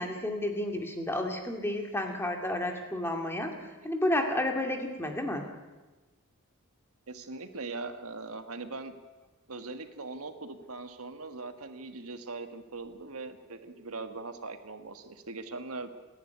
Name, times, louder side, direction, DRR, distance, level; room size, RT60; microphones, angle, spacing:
voice 1, 0.0-5.5, left 1 dB, 10° left, 3 dB, 2.5 m, -31 dB
voice 2, 7.1-8.9 9.5-15.9, right 3 dB, 75° right, 8 dB, 1.7 m, -41 dB
27.5 x 11.0 x 9.5 m, 1.2 s
head